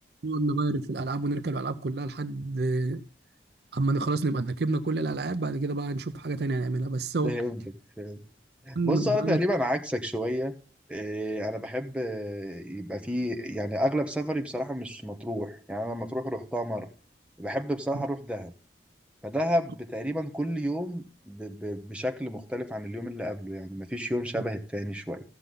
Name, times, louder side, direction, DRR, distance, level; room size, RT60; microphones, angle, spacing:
voice 1, 0.2-3.0 3.7-7.3 8.7-9.4 17.9-18.0, right 3 dB, 65° right, 0.6 m, -28 dB
voice 2, 7.2-7.6 8.0-8.2 8.7-10.5 10.9-16.9 17.4-18.5 19.2-25.2, equal, 5° right, 1.0 m, -31 dB
14.0 x 6.8 x 3.8 m
head